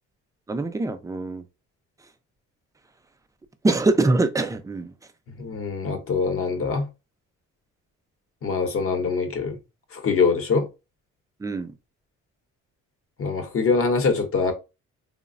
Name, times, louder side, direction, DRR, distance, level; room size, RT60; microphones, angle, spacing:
voice 1, 0.5-1.4 3.6-4.9 11.4-11.7, right 2 dB, 10° right, 0.3 m, -23 dB
voice 2, 5.4-6.9 8.4-9.6 9.9-10.7 13.2-14.5, left 4 dB, 45° left, 0.8 m, -23 dB
3.1 x 2.0 x 2.4 m
cardioid pair, 90°, 30 cm